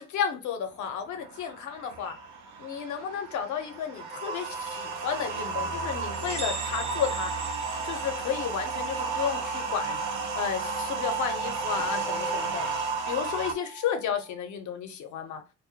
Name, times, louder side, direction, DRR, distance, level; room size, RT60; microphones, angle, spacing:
voice 1, 0.0-2.2 2.6-7.3 7.8-10.0 10.3-15.4, left 8 dB, 75° left, 0.6 m, -32 dB
sound 1, 0.7-13.5, right 4 dB, 80° right, 0.6 m, -34 dB
sound 2, 2.7-14.4, right 5 dB, 5° right, 0.3 m, -38 dB
sound 3, 6.1-8.7, right 4 dB, 65° right, 1.0 m, -39 dB
2.2 x 2.1 x 2.7 m
cardioid pair, 90°, 30 cm